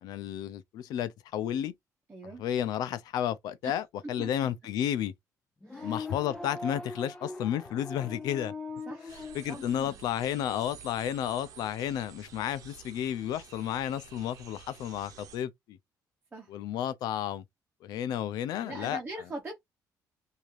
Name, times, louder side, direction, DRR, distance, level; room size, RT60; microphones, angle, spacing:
voice 1, 0.0-1.7 2.4-5.1 5.8-8.5 9.3-15.8 16.5-17.4 17.8-19.0, left 10 dB, 80° left, 0.6 m, -32 dB
voice 2, 2.1-2.4 3.6-3.8 4.2-4.3 5.7-5.9 8.9-9.1 9.5-9.6 16.3-16.5 18.6-19.6, right 2 dB, 20° right, 1.2 m, -41 dB
sound 1, 5.6-10.0, left 3 dB, 10° left, 0.8 m, -41 dB
sound 2, 9.1-15.4, right 8 dB, 60° right, 1.0 m, -51 dB
3.5 x 2.8 x 3.3 m
cardioid pair, 140°, 7 cm